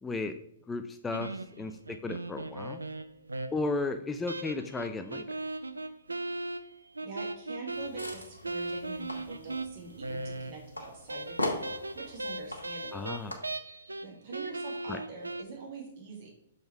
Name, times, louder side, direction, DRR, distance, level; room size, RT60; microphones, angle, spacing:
voice 1, 0.0-0.4 0.7-2.8 3.5-5.2 12.9-13.3 14.9-15.0, left 3 dB, 10° left, 7 dB, 0.4 m, -34 dB
sound 1, 1.1-3.8 4.3-10.8 11.1-14.1 14.3-15.4, right 2 dB, 80° right, 0.4 m, -38 dB
voice 2, 7.0-11.6 11.9-13.2 14.0-16.3, right 4 dB, 45° right, -1 dB, 2.2 m, -45 dB
sound 2, 7.7-13.3, left 1 dB, 85° left, 1.1 m, -40 dB
6.8 x 4.1 x 4.5 m, 0.74 s
figure-of-eight pair, 110°, 0 cm